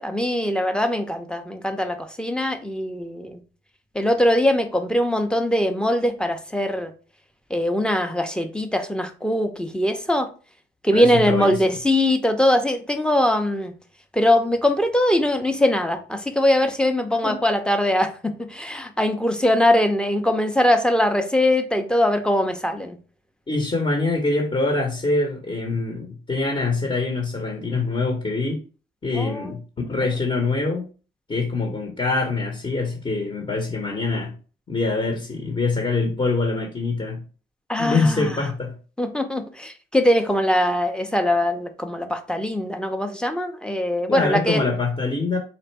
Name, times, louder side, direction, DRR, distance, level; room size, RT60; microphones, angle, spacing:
voice 1, 0.0-3.4 3.9-6.9 7.5-10.3 10.8-13.7 14.1-23.0 29.1-29.5 37.7-38.4 39.0-44.6, left 1 dB, 5° left, 0.7 m, -21 dB
voice 2, 10.9-11.6 17.1-17.4 23.5-28.6 29.0-29.6 29.9-30.8 31.3-34.3 34.7-37.2 37.8-38.7 44.1-45.4, left 3 dB, 25° left, 1.0 m, -24 dB
4.2 x 2.5 x 4.5 m
cardioid pair, 90°, 20 cm